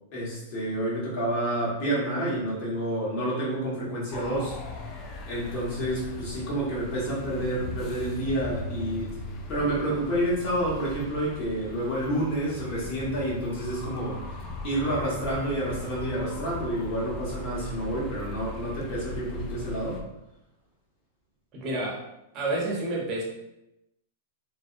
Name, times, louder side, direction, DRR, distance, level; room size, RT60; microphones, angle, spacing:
voice 1, 0.1-4.6 5.2-9.2 9.5-20.0, right 1 dB, 45° left, -6 dB, 1.3 m, -29 dB
sound 1, 4.1-20.0, left 2 dB, 30° left, 0.3 m, -39 dB
voice 2, 21.5-22.0 22.3-23.2, right 2 dB, 35° right, -2 dB, 0.8 m, -29 dB
2.5 x 2.2 x 2.5 m, 0.90 s
hypercardioid pair, 130°, 0 cm